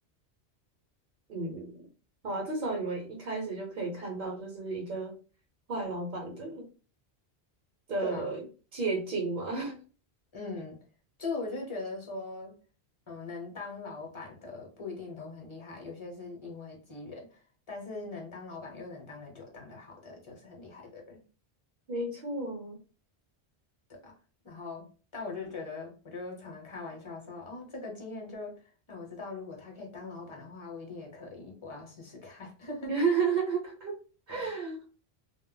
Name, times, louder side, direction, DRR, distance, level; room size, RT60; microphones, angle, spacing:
voice 1, 1.3-1.7 2.2-5.1 5.7-6.7 7.9-8.4 8.7-9.8 21.9-22.8 32.9-34.0 34.3-34.8, right 4 dB, 55° right, -1 dB, 0.8 m, -32 dB
voice 2, 8.0-8.4 10.3-10.8 11.2-12.5 13.1-17.4 17.7-21.2 23.9-24.1 24.4-24.9 25.1-32.9 34.3-34.5, left 3 dB, 30° left, 0 dB, 0.8 m, -41 dB
2.1 x 2.0 x 3.6 m, 0.36 s
omnidirectional pair, 1.1 m